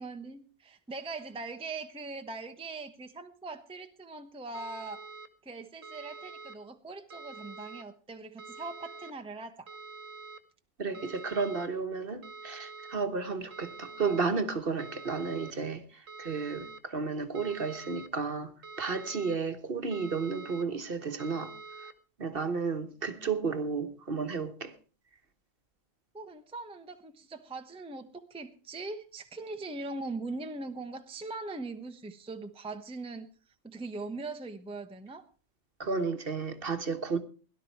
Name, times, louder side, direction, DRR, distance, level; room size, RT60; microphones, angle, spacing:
voice 1, 0.0-5.0 5.4-9.7 26.1-33.3 33.6-35.3, right 3 dB, 5° right, 0.8 m, -41 dB
sound 1, 4.5-5.3 5.8-6.6 7.1-7.8 8.4-9.1 9.7-10.4 10.9-11.7 12.2-13.0 13.5-14.2 14.8-15.5 16.1-16.8 17.3-18.1 18.6-19.4 19.9-20.6 21.2-21.9, right 4 dB, 85° right, 1.6 m, -46 dB
voice 2, 10.8-18.5 18.8-21.5 22.2-24.7 35.8-37.2, right 4 dB, 50° right, 1.3 m, -32 dB
17.5 x 11.5 x 4.6 m
omnidirectional pair, 1.3 m